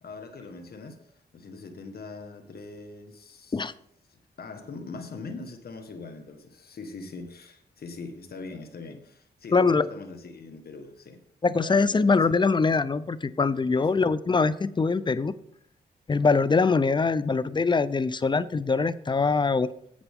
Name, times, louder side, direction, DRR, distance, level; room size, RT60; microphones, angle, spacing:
voice 1, 0.0-3.6 4.1-11.2 11.5-12.4 13.7-14.0, left 3 dB, 60° left, 1.6 m, -42 dB
voice 2, 9.5-9.9 11.4-15.3 16.1-19.7, left 4 dB, 25° left, 0.6 m, -23 dB
11.0 x 8.0 x 3.7 m
cardioid pair, 65°, 18 cm